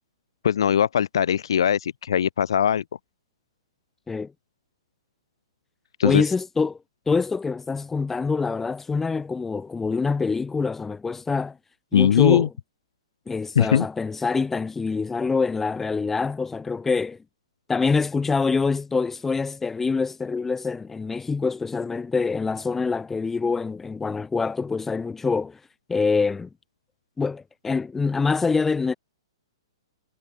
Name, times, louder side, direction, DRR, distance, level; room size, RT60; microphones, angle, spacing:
voice 1, 0.4-2.8 6.0-6.2 11.9-12.5 13.6-13.9, left 8 dB, 65° left, 0.5 m, -20 dB
voice 2, 6.0-6.8 7.1-11.6 11.9-12.5 13.3-17.2 17.7-25.6 25.9-26.5 27.2-28.9, left 4 dB, 10° left, 3.8 m, -25 dB
figure-of-eight pair, 120°, 3 cm